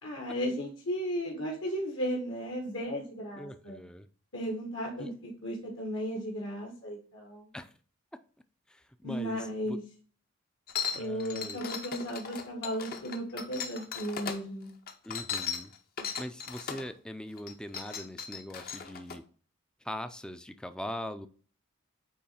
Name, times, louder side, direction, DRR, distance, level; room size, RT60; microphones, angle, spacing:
voice 1, 0.0-3.8 4.3-7.5 9.0-9.8 10.9-14.7, equal, 70° left, -1 dB, 1.7 m, -35 dB
voice 2, 3.4-4.1 5.0-5.1 7.5-7.7 8.7-9.4 9.7-9.8 10.9-11.6 15.0-15.7 16.2-19.2 19.8-21.3, left 1 dB, 5° left, 10 dB, 0.4 m, -41 dB
sound 1, 10.7-14.4 14.9-16.9 17.4-19.2, left 7 dB, 45° left, 0.7 m, -37 dB
8.4 x 3.1 x 4.2 m, 0.42 s
head